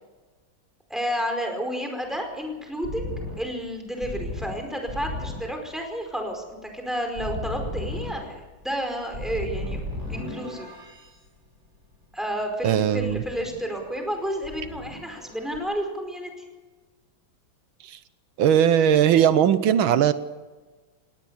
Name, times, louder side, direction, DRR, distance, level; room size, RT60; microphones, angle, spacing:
voice 1, 0.9-9.8 10.1-10.7 12.1-16.3, equal, ahead, 3 dB, 4.8 m, -31 dB
sound 1, 2.1-11.1 13.0-14.2 14.4-15.6, left 1 dB, 35° right, 5.5 m, -35 dB
voice 2, 12.6-13.2 17.8-18.0 18.4-20.1, right 9 dB, 90° right, 13 dB, 1.7 m, -19 dB
20.0 x 18.0 x 7.2 m, 1.3 s
omnidirectional pair, 2.2 m